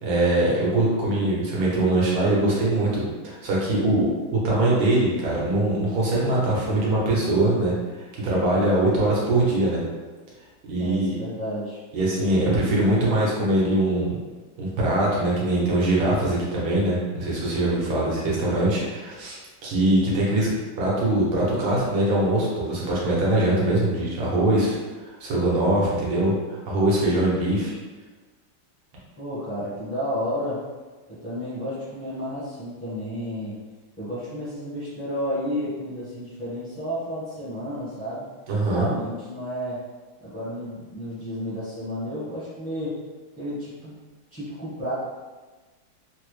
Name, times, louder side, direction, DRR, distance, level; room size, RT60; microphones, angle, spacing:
voice 1, 0.0-9.8 10.7-11.2 11.9-14.2 14.6-20.5 20.8-24.7 25.1-27.7 38.5-38.9, right 1 dB, 80° right, -5 dB, 1.7 m, -22 dB
voice 2, 10.8-11.8 29.2-30.6 31.1-33.6 34.0-38.3 38.7-39.8 40.2-43.0 43.4-44.0 44.3-45.0, equal, 15° left, -10 dB, 0.5 m, -31 dB
3.9 x 2.1 x 3.1 m, 1.3 s
omnidirectional pair, 2.2 m